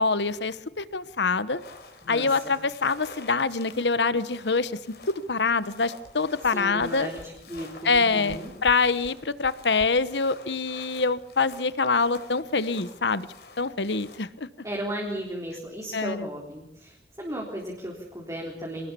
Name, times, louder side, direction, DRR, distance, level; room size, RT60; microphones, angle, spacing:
voice 1, 0.0-1.6 2.1-4.8 5.1-7.1 7.8-13.3 13.6-14.5 15.9-16.3, left 4 dB, 85° left, 15 dB, 1.1 m, -25 dB
sound 1, 1.5-14.2, left 3 dB, 65° left, 4.6 m, -49 dB
voice 2, 2.0-2.5 6.5-8.5 14.6-18.9, right 1 dB, 20° right, -2 dB, 3.9 m, -35 dB
sound 2, 6.0-6.1 6.4-6.5 6.8-6.9 7.2-7.3 7.5-7.6 7.9-8.4 8.6-8.8 9.0-9.1 9.4-9.5 9.8-9.9, equal, 65° right, 2.0 m, -45 dB
25.5 x 19.0 x 7.0 m, 0.81 s
head